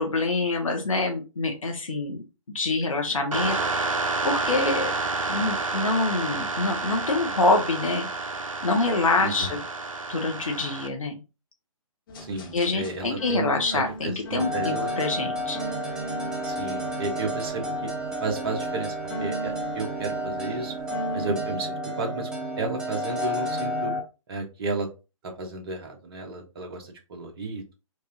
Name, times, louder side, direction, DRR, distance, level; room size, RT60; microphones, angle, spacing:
voice 1, 0.0-2.2 2.5-3.9 4.2-4.9 5.3-8.1 8.6-9.6 10.1-11.2 12.5-15.6, left 3 dB, 70° left, 2 dB, 1.0 m, -26 dB
sound 1, 3.3-10.9, right 3 dB, 70° right, 0.7 m, -29 dB
voice 2, 9.2-9.5 12.3-15.0 16.4-17.9 18.2-20.7 21.1-22.3 22.6-23.9 24.3-24.9 25.4-27.7, right 3 dB, 45° right, 3 dB, 1.2 m, -33 dB
sound 2, 12.1-21.4, right 1 dB, 40° left, 1.0 m, -39 dB
sound 3, 14.4-24.0, equal, 5° right, 0.3 m, -31 dB
4.7 x 2.6 x 2.7 m, 0.29 s
figure-of-eight pair, 130°, 18 cm